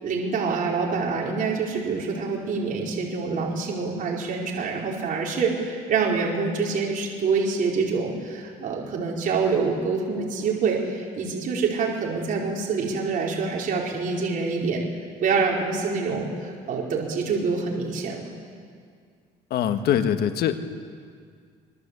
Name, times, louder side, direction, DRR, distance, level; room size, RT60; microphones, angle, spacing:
voice 1, 0.0-14.8 15.2-18.3, right 4 dB, 55° right, -2 dB, 4.7 m, -26 dB
voice 2, 19.5-20.6, left 9 dB, 70° left, 8 dB, 1.6 m, -23 dB
26.0 x 21.5 x 8.3 m, 2.1 s
cardioid pair, 110°, 17 cm